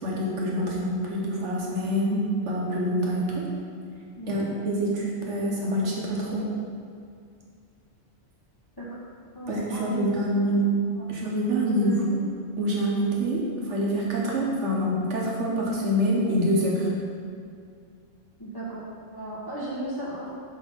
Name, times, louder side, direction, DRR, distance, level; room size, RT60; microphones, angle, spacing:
voice 1, 0.0-3.5 4.3-6.5 9.5-10.7 11.1-12.0 12.6-16.9, equal, 85° right, -3 dB, 1.4 m, -26 dB
voice 2, 4.1-4.4 8.8-8.9 9.3-10.2 11.0-11.1 11.8-12.0 18.4-18.8 19.1-20.3, right 1 dB, 20° left, -8 dB, 0.9 m, -35 dB
6.6 x 3.5 x 5.2 m, 2.3 s
omnidirectional pair, 1.2 m